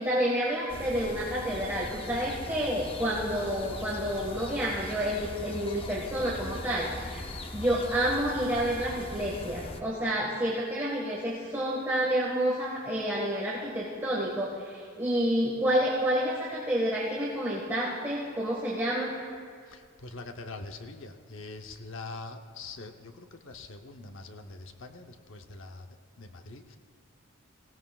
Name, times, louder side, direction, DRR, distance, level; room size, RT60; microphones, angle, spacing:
voice 1, 0.0-7.3 7.5-19.1, equal, 10° right, -6 dB, 1.5 m, -29 dB
sound 1, 0.7-9.8, left 2 dB, 25° left, 0.7 m, -40 dB
voice 2, 19.7-25.9 26.2-26.8, left 3 dB, 65° left, 5 dB, 0.8 m, -43 dB
18.5 x 16.5 x 2.4 m, 2.1 s
head